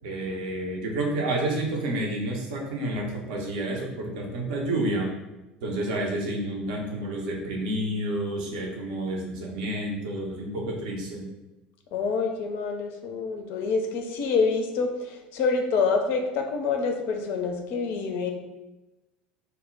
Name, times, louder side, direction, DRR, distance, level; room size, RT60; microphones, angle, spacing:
voice 1, 0.0-5.1 5.6-11.3, right 1 dB, 60° right, -1 dB, 0.6 m, -29 dB
voice 2, 11.9-18.3, left 4 dB, 50° left, 3 dB, 0.4 m, -27 dB
2.0 x 2.0 x 3.7 m, 1.0 s
figure-of-eight pair, 70°, 5 cm